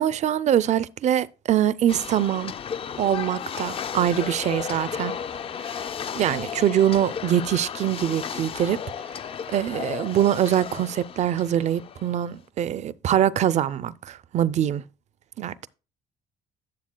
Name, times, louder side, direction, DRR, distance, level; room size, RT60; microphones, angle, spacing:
voice 1, 0.0-2.5 3.0-5.2 5.8-5.9 6.1-8.8 9.5-14.8 15.4-15.7, right 10 dB, 45° right, 0.4 m, -23 dB
sound 1, 1.9-12.3, left 7 dB, 35° left, 0.4 m, -34 dB
11.5 x 7.1 x 2.2 m
cardioid pair, 110°, 17 cm